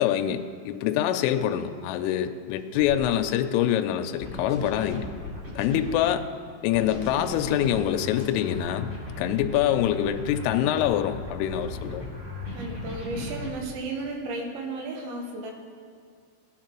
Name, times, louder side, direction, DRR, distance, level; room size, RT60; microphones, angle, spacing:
voice 1, 0.0-5.1 5.6-6.3 6.6-8.9 9.2-12.0, left 11 dB, 85° left, 7 dB, 3.1 m, -25 dB
sound 1, 2.6-3.0 4.2-6.0 6.7-13.5, left 2 dB, 35° right, 3.8 m, -37 dB
voice 2, 12.5-15.5, right 2 dB, 80° right, 1 dB, 3.8 m, -34 dB
18.0 x 9.3 x 3.0 m, 2.2 s
omnidirectional pair, 5.9 m